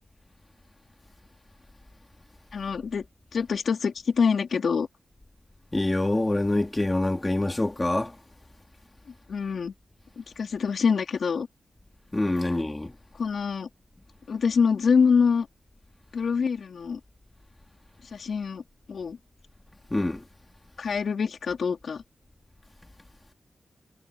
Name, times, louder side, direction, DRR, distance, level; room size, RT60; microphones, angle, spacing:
voice 1, 2.5-3.1 3.3-4.9 9.3-9.7 10.2-11.5 13.1-13.7 14.3-15.5 16.1-17.0 18.1-18.6 18.9-19.2 20.8-22.0, left 6 dB, 65° left, 3.9 m, -25 dB
voice 2, 5.7-8.1 12.1-12.9 19.9-20.2, left 2 dB, 15° left, 3.4 m, -25 dB
wide cardioid pair, 125°, 0 cm